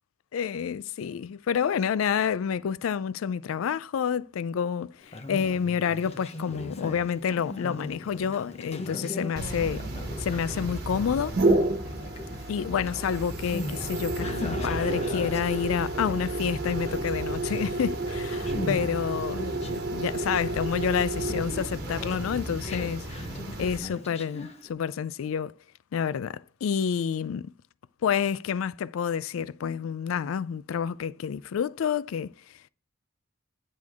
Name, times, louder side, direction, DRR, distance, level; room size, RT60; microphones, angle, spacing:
voice 1, 0.3-9.9 10.2-11.4 12.5-23.1 23.6-25.5 25.9-27.5 28.0-32.3, left 7 dB, 90° left, 0.3 m, -29 dB
Conversation, 5.0-24.7, left 1 dB, 30° left, 0.8 m, -40 dB
sound 1, 9.4-23.8, right 2 dB, 50° right, 1.3 m, -31 dB
10.5 x 6.4 x 3.5 m
head